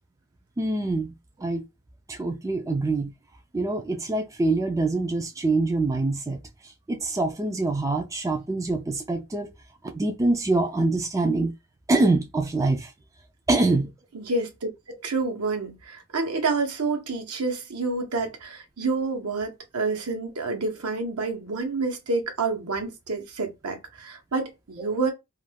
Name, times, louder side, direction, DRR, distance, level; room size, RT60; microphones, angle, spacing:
voice 1, 0.6-1.1 1.4-1.6 2.1-3.1 3.5-9.5 9.9-11.5 11.9-12.9 13.5-13.9 24.8-24.9, right 2 dB, 15° right, 0.3 m, -25 dB
voice 2, 14.1-14.7 15.0-25.1, right 3 dB, 75° right, 0.9 m, -28 dB
2.4 x 2.3 x 3.3 m
head